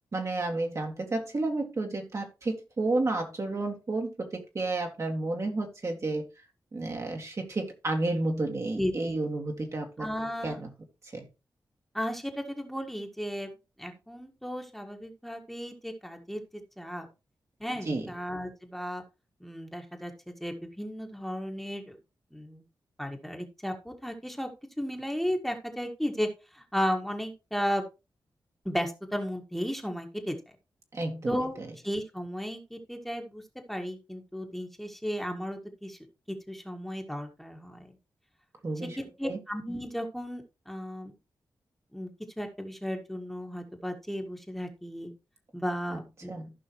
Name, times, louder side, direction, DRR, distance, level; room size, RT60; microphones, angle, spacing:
voice 1, 0.1-6.3 6.7-10.1 10.4-10.7 11.1-11.3 17.7-18.1 30.9-31.7 38.6-39.0 39.2-39.4 45.9-46.0 46.3-46.5, right 2 dB, 40° right, 1.9 m, -31 dB
voice 2, 8.8-9.2 10.0-10.6 11.9-13.5 13.8-17.1 17.6-19.0 19.4-22.0 22.3-22.6 23.0-24.5 24.8-26.3 26.5-27.8 28.7-30.4 31.3-31.6 31.8-33.4 33.7-36.0 36.5-37.9 39.2-41.1 41.9-42.1 42.4-45.1 45.5-46.3, equal, ahead, 1.7 m, -34 dB
14.5 x 5.6 x 3.0 m
wide cardioid pair, 105°, 8 cm